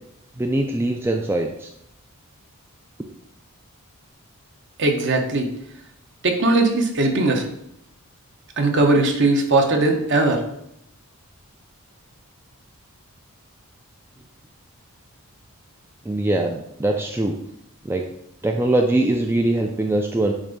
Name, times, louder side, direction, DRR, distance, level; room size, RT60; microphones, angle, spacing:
voice 1, 0.4-1.7 16.1-17.4 17.8-18.0 18.4-20.3, right 1 dB, 10° right, 2 dB, 0.3 m, -22 dB
voice 2, 4.8-5.5 6.2-7.5 8.6-10.4, right 2 dB, 55° right, 3 dB, 0.9 m, -19 dB
7.3 x 2.6 x 5.1 m, 0.78 s
head